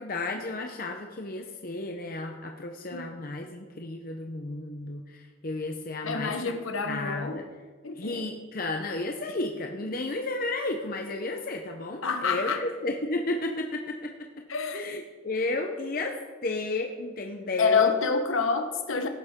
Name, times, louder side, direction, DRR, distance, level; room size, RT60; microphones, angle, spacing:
voice 1, 0.0-6.5 6.8-7.5 8.0-14.1 14.7-16.2 16.4-18.0, left 2 dB, 45° left, 3 dB, 0.8 m, -33 dB
voice 2, 6.0-7.4 7.8-8.2 12.0-12.6 14.5-14.9 17.6-19.1, left 5 dB, 85° left, 6 dB, 1.1 m, -27 dB
17.5 x 9.7 x 3.7 m, 1.4 s
head